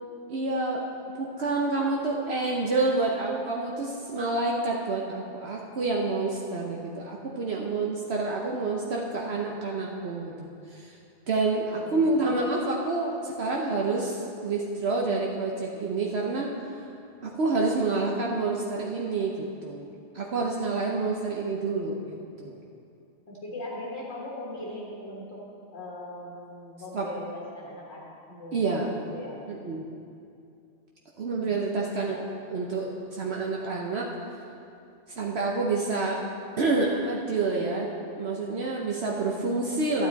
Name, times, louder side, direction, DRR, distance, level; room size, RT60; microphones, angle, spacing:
voice 1, 0.3-0.9 1.1-11.0 11.3-16.5 17.2-19.9 20.1-22.6 26.9-27.1 28.5-28.9 29.5-29.9 31.2-32.2 32.5-34.1 35.1-36.2 36.6-37.9 38.2-40.1, right 3 dB, 65° right, -2 dB, 1.1 m, -28 dB
voice 2, 11.7-12.3 23.3-25.4 25.7-29.4 31.4-32.3 32.8-32.9, left 1 dB, 65° left, -4 dB, 1.9 m, -40 dB
12.0 x 9.5 x 4.0 m, 2.6 s
omnidirectional pair, 1.2 m